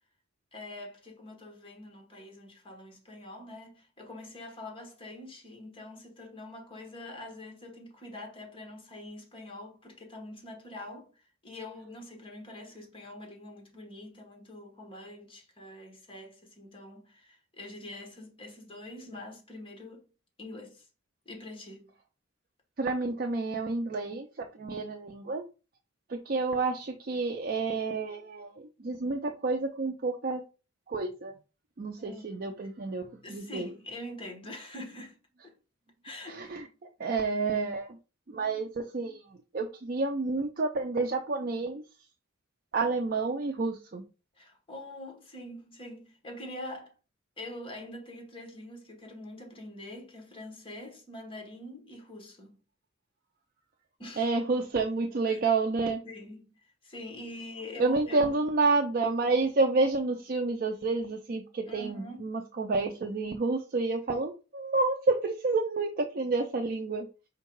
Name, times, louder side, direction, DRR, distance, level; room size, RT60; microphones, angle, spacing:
voice 1, 0.5-20.1 20.4-20.9 21.2-21.9 32.0-32.4 33.2-35.2 35.4-35.6 36.0-36.4 44.3-46.9 47.4-52.5 54.0-54.3 55.3-55.4 56.0-58.4 61.7-62.3, left 1 dB, 25° left, 1.2 m, -45 dB
voice 2, 22.8-25.4 26.1-30.4 30.9-31.3 31.8-33.0 33.3-33.7 36.3-36.6 37.0-38.0 38.3-39.2 39.5-41.8 42.7-44.0 54.2-56.0 57.8-67.1, right 3 dB, 45° right, 0.5 m, -29 dB
4.5 x 2.3 x 4.6 m
head